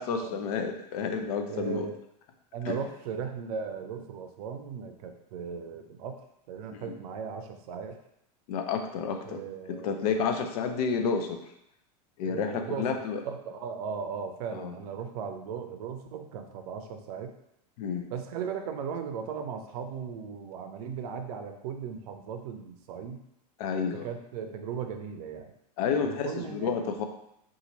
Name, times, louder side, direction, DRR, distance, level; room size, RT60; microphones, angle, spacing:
voice 1, 0.0-1.9 2.6-2.8 6.7-6.9 8.5-9.4 9.7-11.4 12.2-13.2 14.5-14.7 17.8-18.1 23.6-24.1 25.8-27.0, left 6 dB, 65° left, 5 dB, 0.6 m, -30 dB
voice 2, 1.5-1.9 2.5-6.2 6.5-8.0 9.2-10.1 12.2-12.9 13.2-17.3 18.1-23.2 24.0-25.5 26.0-26.7, right 6 dB, 65° right, 6 dB, 0.5 m, -37 dB
2.8 x 2.5 x 3.9 m, 0.81 s
hypercardioid pair, 105°, 21 cm